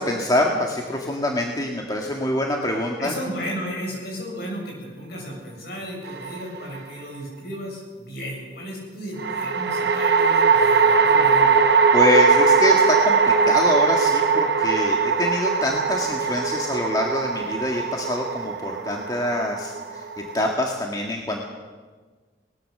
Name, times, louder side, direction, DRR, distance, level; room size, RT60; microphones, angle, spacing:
voice 1, 0.0-3.1 11.9-21.4, left 1 dB, 20° left, 0 dB, 1.8 m, -25 dB
voice 2, 3.0-11.6, equal, 60° left, -1 dB, 7.3 m, -34 dB
sound 1, 6.1-6.8 9.2-20.5, right 5 dB, 60° right, 1.3 m, -20 dB
20.0 x 20.0 x 6.7 m, 1.4 s
head